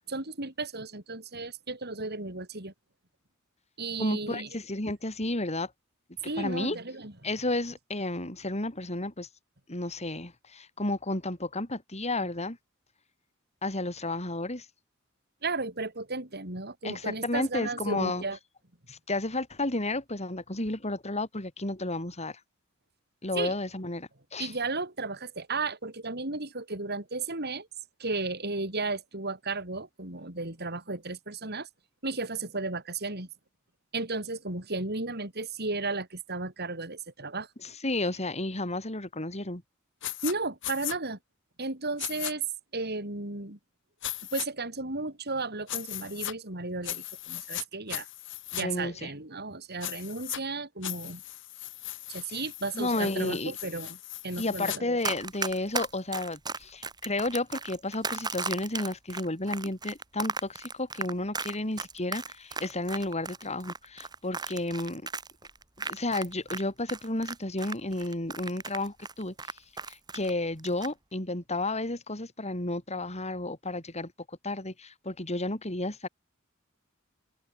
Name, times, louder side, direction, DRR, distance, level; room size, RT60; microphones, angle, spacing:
voice 1, 0.0-2.7 3.8-4.5 6.2-7.1 15.4-18.4 23.3-23.5 24.4-27.7 28.0-31.7 32.0-33.3 33.9-37.5 40.2-41.2 41.6-42.4 42.7-43.6 44.3-48.1 48.5-51.2 52.1-54.0 54.2-54.9, right 3 dB, 50° right, 6.6 m, -34 dB
voice 2, 4.0-5.7 6.4-6.8 7.2-9.3 9.7-12.6 13.6-14.6 16.8-18.2 18.9-22.4 23.2-24.5 37.6-39.6 48.6-49.1 52.3-52.4 52.7-53.5 54.4-65.1 65.8-69.3 69.9-76.1, left 2 dB, 30° left, 4.9 m, -32 dB
sound 1, 40.0-40.3 40.6-41.0 42.0-42.3 44.0-44.5 45.7-46.3 46.8-47.6 47.9-48.6 49.8-50.4 50.8-54.8, left 14 dB, 65° left, 3.1 m, -37 dB
Run, 55.0-66.6 66.9-70.3 70.6-70.9, right 4 dB, 20° right, 2.6 m, -35 dB
open air
head